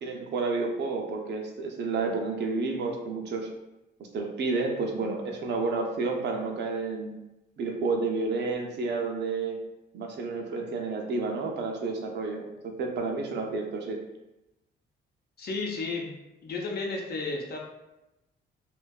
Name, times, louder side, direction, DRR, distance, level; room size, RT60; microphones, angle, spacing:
voice 1, 0.0-3.5 4.1-7.1 7.6-9.6 9.9-14.0, right 3 dB, 60° right, 2 dB, 0.5 m, -30 dB
voice 2, 15.4-16.1 16.4-17.6, left 3 dB, 55° left, -1 dB, 0.6 m, -32 dB
2.5 x 2.3 x 2.2 m, 0.95 s
cardioid pair, 90°, 20 cm